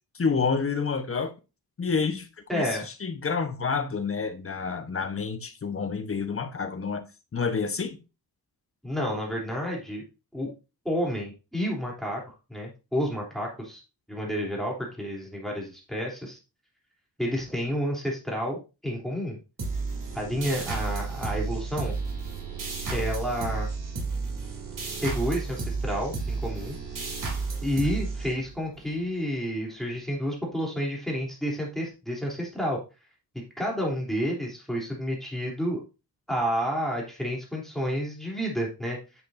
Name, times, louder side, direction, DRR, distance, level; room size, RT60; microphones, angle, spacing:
voice 1, 0.1-1.3 1.8-2.7 3.0-7.0 7.3-8.0, left 5 dB, 35° left, 1.1 m, -28 dB
voice 2, 2.5-2.9 8.8-10.0 10.3-10.5 10.8-12.2 12.5-13.8 14.1-16.4 17.2-19.4 20.1-22.0 22.9-23.7 25.0-26.7 27.6-32.8 33.6-35.8 36.3-39.2, equal, ahead, 3.3 m, -30 dB
sound 1, 19.6-28.8, right 4 dB, 55° right, 2.9 m, -32 dB
9.7 x 7.6 x 2.7 m
wide cardioid pair, 115°, 39 cm